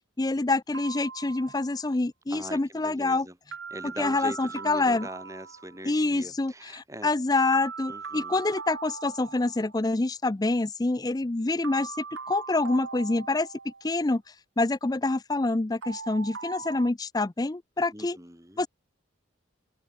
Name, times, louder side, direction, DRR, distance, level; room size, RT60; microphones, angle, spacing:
voice 1, 0.2-3.3 4.0-5.1 5.9-12.0 12.3-13.5 13.8-14.2 14.6-18.2 18.6-18.7, left 2 dB, 20° left, 0.4 m, -26 dB
sound 1, 0.7-1.9 3.5-5.8 7.5-9.8 11.6-14.0 15.8-16.9, right 5 dB, 80° right, 1.7 m, -40 dB
voice 2, 2.3-3.4 3.7-7.1 7.9-8.4 17.9-18.7, right 1 dB, 15° right, 5.8 m, -42 dB
head